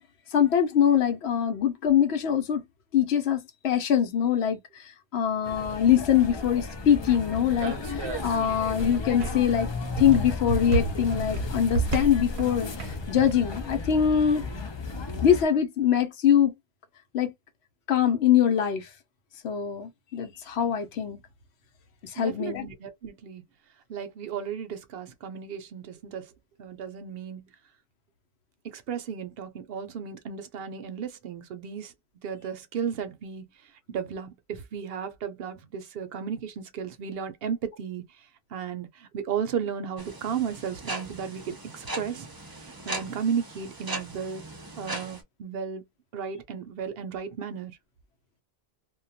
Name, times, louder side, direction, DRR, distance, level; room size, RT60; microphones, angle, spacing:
voice 1, 0.3-2.6 2.9-9.7 10.0-14.4 15.2-16.5 17.1-17.3 17.9-18.9 19.4-21.2 22.0-22.7, left 9 dB, 80° left, 0.9 m, -23 dB
sound 1, 5.4-15.4, left 3 dB, 45° left, 0.3 m, -35 dB
sound 2, 6.2-13.3, right 3 dB, 90° right, 1.0 m, -33 dB
voice 2, 22.2-23.4 23.9-26.3 26.6-27.5 28.6-31.9 32.2-33.5 33.9-38.0 38.5-42.3 42.8-44.4 44.8-45.8 46.1-47.7, right 7 dB, 70° right, 0.8 m, -34 dB
sound 3, 40.0-45.2, right 2 dB, 25° right, 0.6 m, -38 dB
2.2 x 2.2 x 2.6 m
omnidirectional pair, 1.1 m